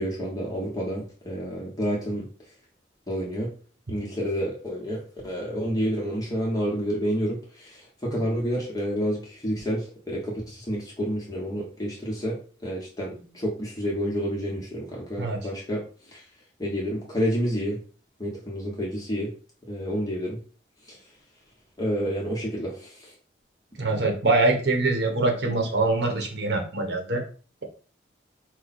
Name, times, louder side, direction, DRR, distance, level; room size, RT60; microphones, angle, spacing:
voice 1, 0.0-2.2 3.1-3.5 3.9-15.8 16.1-16.2 16.6-17.8 18.2-19.3 19.7-20.4 21.8-23.1, equal, 20° left, -3 dB, 1.0 m, -29 dB
voice 2, 23.8-27.2, right 2 dB, 70° right, 3 dB, 1.1 m, -24 dB
4.7 x 2.2 x 4.1 m, 0.38 s
head